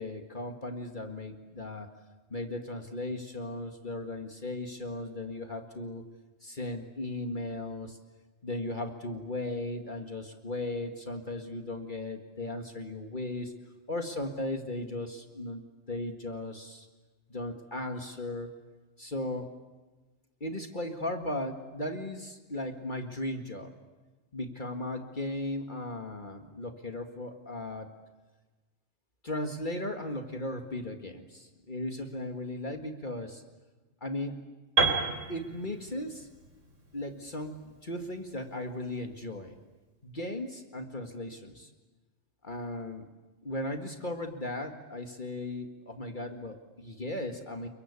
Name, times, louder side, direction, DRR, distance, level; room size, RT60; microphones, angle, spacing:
voice 1, 0.0-1.9 2.3-6.1 6.4-8.0 8.4-13.5 13.9-15.6 15.9-16.9 17.3-18.5 19.0-19.5 20.4-23.7 24.3-27.9 29.2-33.4 34.0-34.4 35.3-36.3 36.9-39.6 40.0-41.7 42.4-43.1 43.4-47.7, left 1 dB, 40° left, 5 dB, 2.1 m, -36 dB
Piano, 34.8-38.7, right 4 dB, 85° right, 4.3 m, -31 dB
30.0 x 23.0 x 8.4 m, 1.2 s
omnidirectional pair, 1.3 m